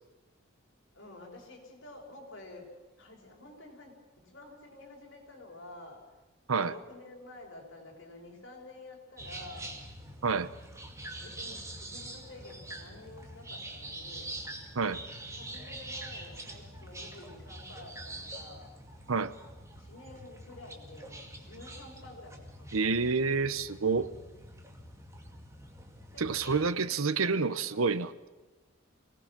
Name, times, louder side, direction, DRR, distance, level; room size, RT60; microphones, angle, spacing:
voice 1, 0.9-6.0 6.6-9.7 11.1-14.4 15.4-18.7 19.8-23.1 26.1-27.9, left 2 dB, 60° left, 5.5 m, -50 dB
sound 1, 9.2-26.7, right 1 dB, 15° right, 2.2 m, -45 dB
voice 2, 22.7-24.1 26.2-28.1, right 4 dB, 85° right, 0.9 m, -28 dB
23.5 x 18.5 x 6.1 m
head